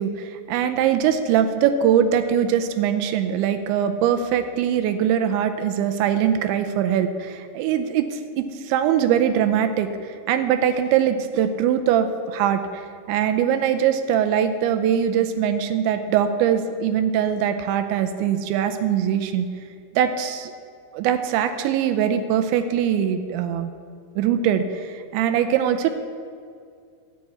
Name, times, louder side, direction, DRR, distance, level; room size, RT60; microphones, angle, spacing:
voice 1, 0.0-19.5 20.0-20.5 20.9-23.7 24.2-26.0, right 9 dB, 80° right, 8 dB, 2.8 m, -22 dB
12.5 x 6.8 x 8.4 m, 2.3 s
omnidirectional pair, 5.5 m